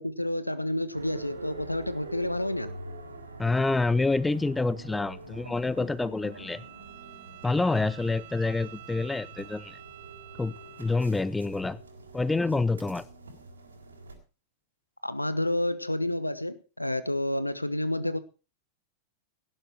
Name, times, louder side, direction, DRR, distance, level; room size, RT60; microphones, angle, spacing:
voice 1, 0.0-2.7 15.0-18.2, left 1 dB, 85° left, 1.2 m, -29 dB
sound 1, 0.9-14.1, right 2 dB, 75° right, 3.7 m, -45 dB
voice 2, 3.4-6.6 7.4-9.8 10.4-10.5 10.8-11.8 12.1-13.1, left 3 dB, 10° left, 0.8 m, -27 dB
Bowed string instrument, 6.3-11.2, right 18 dB, 50° right, 1.4 m, -49 dB
18.0 x 11.5 x 4.5 m
figure-of-eight pair, 90°, 0 cm